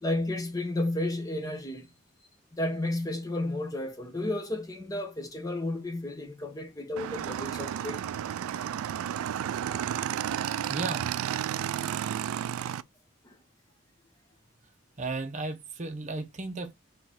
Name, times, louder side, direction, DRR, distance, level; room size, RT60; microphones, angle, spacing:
voice 1, 0.0-1.9 2.5-8.0 13.2-13.4, left 1 dB, 15° left, 0.7 m, -32 dB
Motorcycle / Engine, 7.0-12.8, right 10 dB, 85° right, 0.3 m, -32 dB
voice 2, 10.7-11.1 15.0-16.7, right 3 dB, 35° right, 0.6 m, -34 dB
3.8 x 3.1 x 4.2 m
head